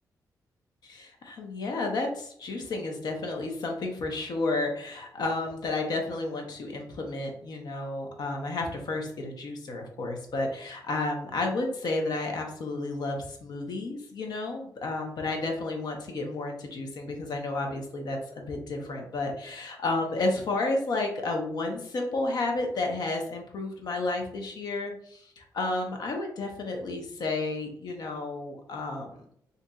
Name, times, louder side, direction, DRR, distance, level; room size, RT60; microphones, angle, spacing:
voice 1, 0.8-29.2, left 2 dB, 70° left, 2 dB, 0.8 m, -32 dB
3.9 x 2.6 x 2.3 m, 0.67 s
cardioid pair, 100°, 7 cm